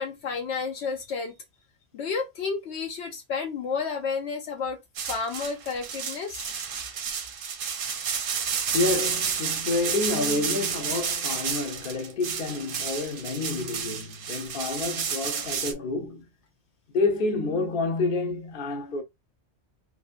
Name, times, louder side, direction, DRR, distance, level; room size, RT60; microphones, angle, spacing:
voice 1, 0.0-1.3 1.9-4.8 5.1-6.5 8.3-8.5, left 5 dB, 75° left, 0.9 m, -31 dB
sound 1, 4.9-15.7, right 6 dB, 60° right, 0.7 m, -31 dB
voice 2, 8.7-16.3 16.9-19.0, left 3 dB, 55° left, 1.0 m, -28 dB
3.2 x 2.7 x 2.4 m
omnidirectional pair, 1.1 m